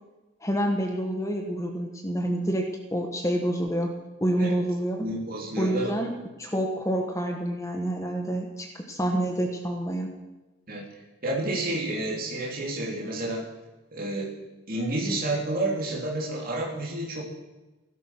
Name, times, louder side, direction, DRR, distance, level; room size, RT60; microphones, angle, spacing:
voice 1, 0.4-2.7 2.9-3.9 4.2-5.1 5.6-6.1 6.4-10.1, right 1 dB, 15° left, 2 dB, 1.4 m, -27 dB
voice 2, 5.0-5.9 10.7-10.9 11.2-13.4 13.9-14.4 14.7-17.2, right 1 dB, 45° right, 0 dB, 3.1 m, -30 dB
15.5 x 12.5 x 6.1 m, 1.1 s
head